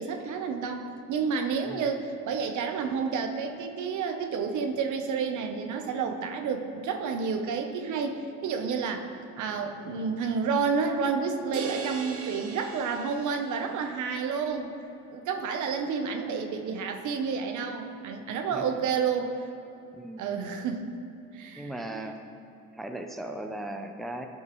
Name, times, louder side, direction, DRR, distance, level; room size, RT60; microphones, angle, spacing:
voice 1, 0.0-9.1 9.4-14.7 15.1-19.3 20.2-21.0 21.3-22.1, right 5 dB, 75° right, 5 dB, 0.8 m, -30 dB
sound 1, 11.5-13.9, right 5 dB, 50° right, 0.9 m, -39 dB
voice 2, 19.9-20.3 21.6-22.2 22.8-24.3, right 1 dB, ahead, 5 dB, 0.5 m, -37 dB
11.5 x 5.4 x 3.0 m, 2.9 s
cardioid pair, 90°, 30 cm